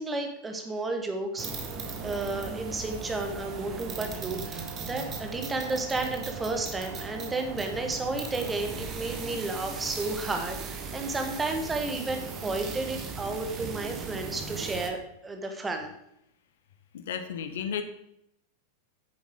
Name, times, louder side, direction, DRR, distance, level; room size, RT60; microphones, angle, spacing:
voice 1, 0.0-1.5 2.0-15.9, right 3 dB, 15° right, 4 dB, 1.3 m, -32 dB
sound 1, 1.4-14.9, right 4 dB, 30° right, 1.2 m, -38 dB
voice 2, 16.9-17.8, left 7 dB, 60° left, 9 dB, 0.9 m, -33 dB
9.0 x 7.2 x 3.8 m, 0.78 s
figure-of-eight pair, 90°, 0 cm